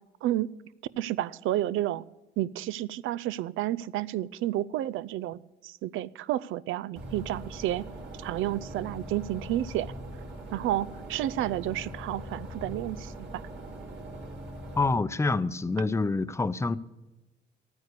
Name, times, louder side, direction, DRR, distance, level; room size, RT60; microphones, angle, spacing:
voice 1, 1.0-2.0 2.4-7.9 8.2-9.9 10.5-13.4, right 13 dB, 85° right, 0.4 m, -31 dB
sound 1, 7.0-15.0, right 1 dB, 70° right, 4.3 m, -41 dB
voice 2, 14.8-16.8, left 3 dB, 15° left, 0.6 m, -27 dB
13.0 x 9.5 x 6.7 m
cardioid pair, 90°, 20 cm